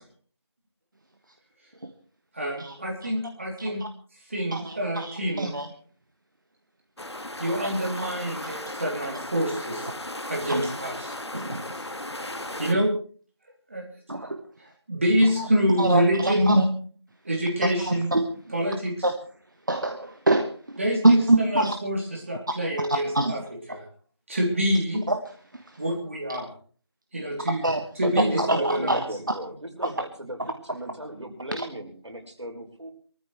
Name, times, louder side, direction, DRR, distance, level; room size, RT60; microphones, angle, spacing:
voice 1, 2.3-3.8 4.3-5.5 7.4-9.9 10.3-11.1 12.6-12.9 13.7-13.8 14.9-16.6 17.2-18.1 18.5-18.9 20.8-23.8 24.3-25.1 25.8-26.5 27.1-27.6 28.0-29.0, equal, 30° right, -1 dB, 3.0 m, -26 dB
voice 2, 3.6-3.9 4.5-5.7 10.5-10.6 11.3-11.9 14.1-14.4 15.8-16.6 17.8-18.3 19.0-19.1 19.7-20.8 21.0-21.7 23.1-23.3 25.1-25.2 27.5-27.8 28.4-29.0 31.5-31.6, right 2 dB, 45° right, 5 dB, 1.3 m, -24 dB
sound 1, 7.0-12.7, left 1 dB, 70° left, 1.8 m, -36 dB
voice 3, 28.0-32.9, right 1 dB, 85° right, 2 dB, 5.3 m, -35 dB
23.5 x 14.0 x 3.2 m, 0.42 s
figure-of-eight pair, 175°, 15 cm